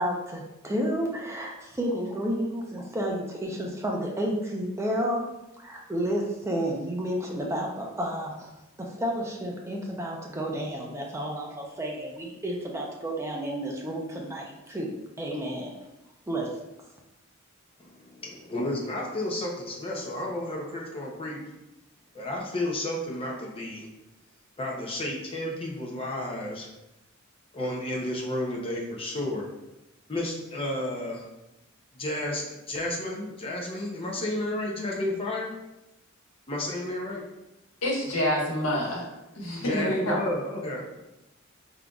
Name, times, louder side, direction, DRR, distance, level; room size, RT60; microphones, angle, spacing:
voice 1, 0.0-5.3 5.6-8.5 8.8-14.9 15.2-15.7 16.3-16.5, equal, 15° right, -1 dB, 0.5 m, -31 dB
voice 2, 17.8-21.4 22.1-23.9 24.6-26.7 27.5-29.5 30.1-31.3 31.9-35.5 36.5-37.2 39.6-40.8, left 1 dB, 25° left, -2 dB, 0.6 m, -32 dB
voice 3, 37.8-39.0 39.3-40.2, equal, 80° left, -3 dB, 1.3 m, -27 dB
4.9 x 3.7 x 2.3 m, 0.94 s
head